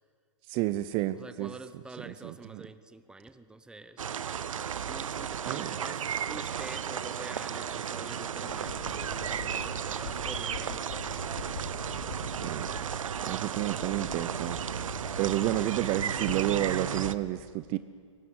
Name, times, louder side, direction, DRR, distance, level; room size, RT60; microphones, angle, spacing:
voice 1, 0.5-1.6 2.1-2.6 5.5-5.8 12.4-12.7 13.2-14.8 15.2-17.8, right 15 dB, 30° right, 14 dB, 0.7 m, -31 dB
voice 2, 1.2-4.1 4.8-11.7, right 2 dB, 5° right, 12 dB, 0.9 m, -47 dB
sound 1, 4.0-17.1, right 8 dB, 80° right, 0.9 m, -34 dB
sound 2, 8.5-17.2, left 6 dB, 70° left, 2.8 m, -44 dB
23.5 x 18.5 x 9.5 m, 2.1 s
hypercardioid pair, 130°, 17 cm